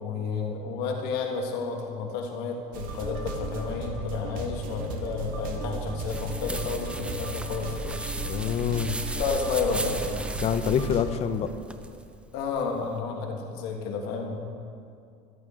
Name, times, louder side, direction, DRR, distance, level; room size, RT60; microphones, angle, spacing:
voice 1, 0.0-8.1 9.2-10.0 12.3-14.4, left 5 dB, 70° left, 2 dB, 1.6 m, -31 dB
sound 1, 2.7-11.1, right 2 dB, 60° right, 1.4 m, -36 dB
sound 2, 6.1-13.0, right 2 dB, 5° right, 0.5 m, -37 dB
voice 2, 8.2-9.1 10.4-11.5, left 8 dB, 40° left, 11 dB, 0.6 m, -26 dB
14.0 x 12.0 x 3.7 m, 2.5 s
cardioid pair, 145°, 17 cm